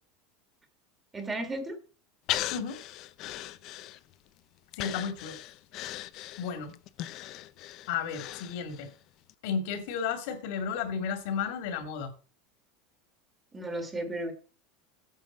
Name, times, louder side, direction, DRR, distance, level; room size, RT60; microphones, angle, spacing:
voice 1, 1.1-1.8 13.5-14.3, right 1 dB, 15° right, 7 dB, 1.5 m, -34 dB
Breathing, 2.3-4.3 4.7-8.9 9.3-9.4, left 14 dB, 45° left, 0.5 m, -38 dB
voice 2, 4.8-5.3 6.4-6.7 7.9-8.9 9.4-12.1, left 6 dB, 65° left, 7 dB, 2.5 m, -33 dB
9.2 x 5.0 x 7.4 m, 0.36 s
supercardioid pair, 155°, 0 cm